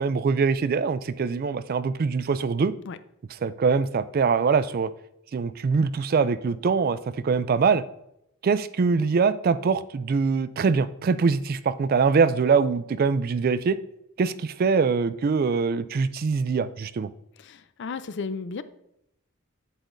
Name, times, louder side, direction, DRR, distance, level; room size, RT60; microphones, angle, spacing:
voice 1, 0.0-2.7 3.4-4.9 5.3-7.0 7.2-7.8 8.4-13.8 14.2-17.1, right 5 dB, 40° right, 14 dB, 0.3 m, -23 dB
voice 2, 17.4-18.6, left 4 dB, 55° left, 13 dB, 0.4 m, -34 dB
8.2 x 8.0 x 2.6 m, 0.80 s
head